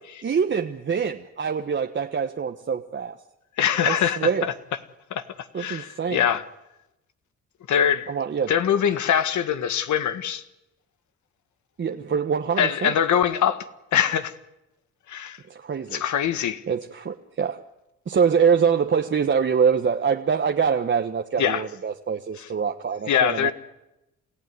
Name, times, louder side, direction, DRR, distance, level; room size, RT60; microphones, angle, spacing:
voice 1, 0.2-3.2 3.8-4.5 5.5-6.3 8.1-8.5 11.8-13.0 15.5-16.0 16.7-17.6 18.1-23.5, right 6 dB, 40° right, 1.3 m, -24 dB
voice 2, 3.6-4.5 5.1-5.2 5.6-6.4 7.7-8.1 8.5-10.4 12.6-13.6 13.9-14.3 15.1-15.4 15.9-16.6 21.4-21.6 23.1-23.5, left 9 dB, 70° left, 1.7 m, -23 dB
28.0 x 15.5 x 9.6 m
cardioid pair, 90°, 30 cm